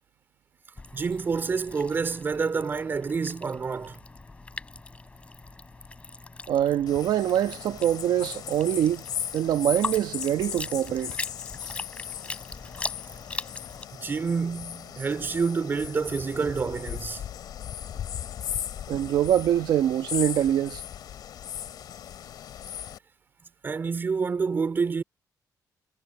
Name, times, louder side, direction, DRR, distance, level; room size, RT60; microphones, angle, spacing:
sound 1, 0.8-13.9, left 3 dB, 15° left, 4.2 m, -40 dB
voice 1, 0.9-4.0 13.9-17.2 23.6-25.0, right 5 dB, 30° right, 3.9 m, -28 dB
voice 2, 6.5-9.0 9.3-11.2 18.9-20.8, right 11 dB, 80° right, 1.2 m, -24 dB
sound 2, 6.9-23.0, left 9 dB, 70° left, 2.7 m, -37 dB
wide cardioid pair, 175°, 7 cm